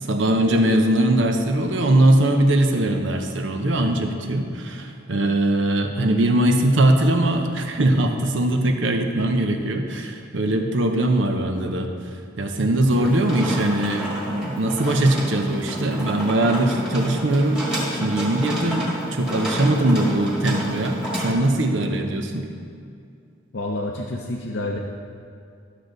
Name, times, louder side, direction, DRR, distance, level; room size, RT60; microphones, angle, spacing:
voice 1, 0.0-11.9 12.4-17.6 17.9-22.5, right 1 dB, 65° right, 5 dB, 0.8 m, -21 dB
sound 1, 12.8-21.3, equal, 5° right, 1.5 m, -30 dB
voice 2, 12.9-13.3 23.5-24.8, left 2 dB, 60° left, -1 dB, 0.6 m, -29 dB
11.5 x 6.5 x 3.9 m, 2.4 s
head